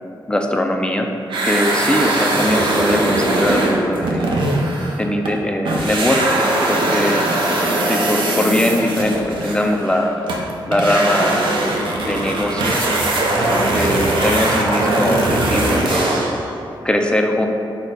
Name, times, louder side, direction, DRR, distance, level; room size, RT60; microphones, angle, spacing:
voice 1, 0.3-1.1 1.4-4.3 5.0-7.3 7.9-10.2 10.7-11.4 12.0-12.9 13.3-16.1 16.8-17.5, left 1 dB, 10° left, 3 dB, 0.3 m, -21 dB
sound 1, 1.3-5.4 5.6-16.4, right 2 dB, 80° right, 0.6 m, -20 dB
6.0 x 2.1 x 3.9 m, 2.7 s
wide cardioid pair, 105°, 8 cm